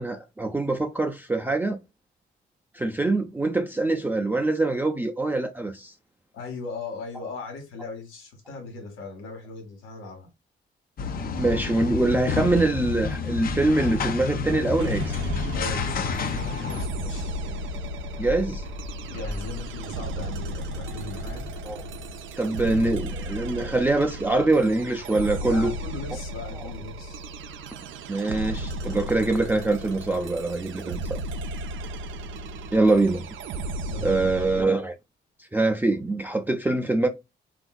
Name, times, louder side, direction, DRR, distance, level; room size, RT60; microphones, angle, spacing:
voice 1, 0.0-1.8 2.7-5.9 11.4-15.1 18.2-18.6 21.7-21.8 22.4-25.7 28.1-31.2 32.7-33.3 34.0-35.0 35.4-37.1, right 2 dB, 10° right, 0.4 m, -24 dB
voice 2, 6.3-10.3 15.5-17.3 19.1-21.5 25.4-27.2 33.9-34.3, left 3 dB, 90° left, 1.2 m, -38 dB
sound 1, 11.0-16.9, left 5 dB, 45° left, 0.5 m, -29 dB
sound 2, 14.8-34.6, right 1 dB, 75° right, 0.4 m, -35 dB
sound 3, 15.0-22.2, left 2 dB, 65° left, 1.0 m, -38 dB
3.6 x 2.5 x 2.2 m
cardioid pair, 90°, 20 cm